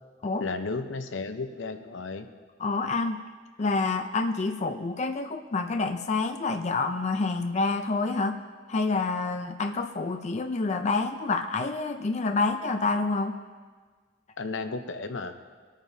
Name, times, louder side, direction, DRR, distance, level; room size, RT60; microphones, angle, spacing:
voice 1, 0.4-2.3 14.4-15.3, left 3 dB, 85° left, 8 dB, 0.8 m, -33 dB
voice 2, 2.6-3.2 3.6-8.4 8.7-13.4, left 3 dB, 40° left, 6 dB, 0.5 m, -28 dB
21.5 x 8.9 x 2.7 m, 1.5 s
head